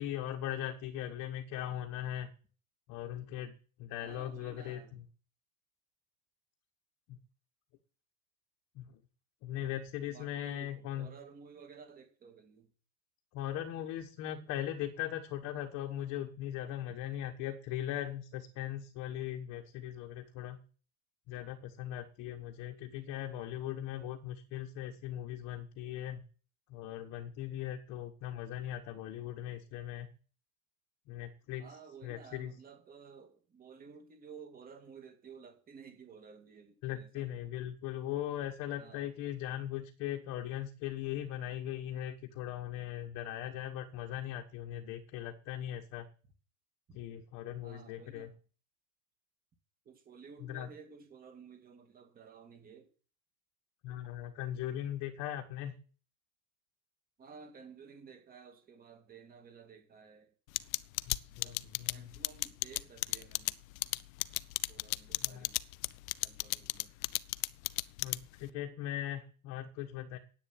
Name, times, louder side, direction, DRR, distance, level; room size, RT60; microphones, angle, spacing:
voice 1, 0.0-2.3 2.9-3.5 3.8-4.8 7.1-7.2 8.7-8.9 9.4-11.1 13.3-20.6 21.3-26.2 26.7-30.1 31.1-31.7 32.0-32.5 36.8-46.1 46.9-48.3 50.5-50.7 53.8-55.7 61.1-62.1 65.2-65.5 68.0-70.2, left 11 dB, 35° left, 1.4 m, -39 dB
voice 2, 4.0-5.1 10.1-12.7 31.6-37.3 38.8-39.1 46.9-47.0 47.6-48.4 49.8-52.9 57.2-60.3 61.3-61.6 61.9-63.6 64.7-65.6 66.2-66.9, right 5 dB, 20° right, 2.3 m, -54 dB
sound 1, 60.6-68.5, left 22 dB, 65° left, 0.7 m, -33 dB
10.5 x 8.6 x 8.9 m
supercardioid pair, 165°, 45 cm